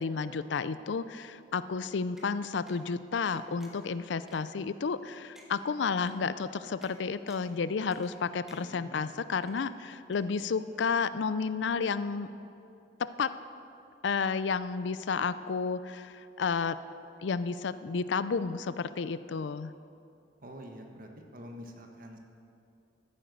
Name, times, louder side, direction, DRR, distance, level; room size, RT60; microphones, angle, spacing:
voice 1, 0.0-12.3 13.0-13.3 14.0-16.8 17.2-19.7, left 5 dB, 75° left, 14 dB, 0.5 m, -31 dB
sound 1, 2.2-2.3 2.7-2.8 3.3-3.9 4.3-4.4 4.9-5.0 5.4-5.5 6.1-6.2 6.8-6.9 7.3-7.5 7.9-8.2 8.5-9.0 9.4-9.9 10.1-10.2, equal, 5° right, 1.5 m, -57 dB
voice 2, 8.5-9.2 10.7-10.8 20.4-22.2, equal, 50° right, 3 dB, 1.4 m, -47 dB
14.0 x 9.1 x 6.5 m, 2.6 s
head